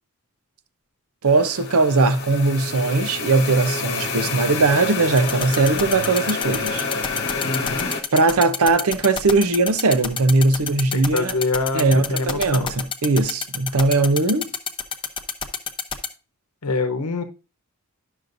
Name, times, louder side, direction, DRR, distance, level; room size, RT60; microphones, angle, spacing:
voice 1, 1.2-6.9 8.1-11.4 11.7-14.5, right 3 dB, 70° right, 0.7 m, -19 dB
sound 1, 1.3-8.0, left 4 dB, 50° left, 1.1 m, -28 dB
sound 2, 5.2-16.1, left 7 dB, 20° left, 0.7 m, -26 dB
voice 2, 7.4-7.9 10.9-12.7 16.6-17.2, left 3 dB, 85° left, 0.9 m, -25 dB
11.0 x 6.3 x 2.6 m
head